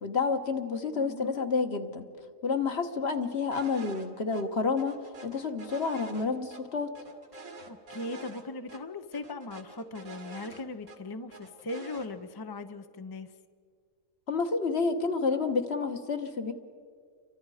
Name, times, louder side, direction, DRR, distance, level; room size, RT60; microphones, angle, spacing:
voice 1, 0.0-2.0 2.4-7.0 14.3-16.5, left 4 dB, 50° left, 7 dB, 1.5 m, -29 dB
voice 2, 0.9-1.5 7.7-13.3, left 2 dB, 25° left, 9 dB, 0.5 m, -39 dB
sound 1, 3.5-4.1 4.3-4.4 4.8-6.6 6.9-8.4 8.7-8.8 9.1-11.0 11.3-12.1, right 3 dB, 90° right, 2.4 m, -47 dB
30.0 x 24.0 x 4.9 m, 2.1 s
omnidirectional pair, 1.4 m